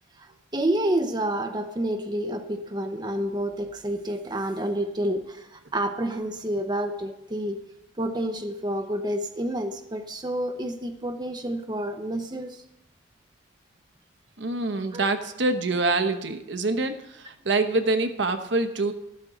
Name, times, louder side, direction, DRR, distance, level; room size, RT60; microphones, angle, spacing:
voice 1, 0.2-7.7 8.0-12.6 14.9-15.1, right 1 dB, 20° right, 5 dB, 0.7 m, -29 dB
voice 2, 14.4-18.9, right 3 dB, 65° right, 8 dB, 1.0 m, -25 dB
13.5 x 12.0 x 3.9 m, 0.86 s
head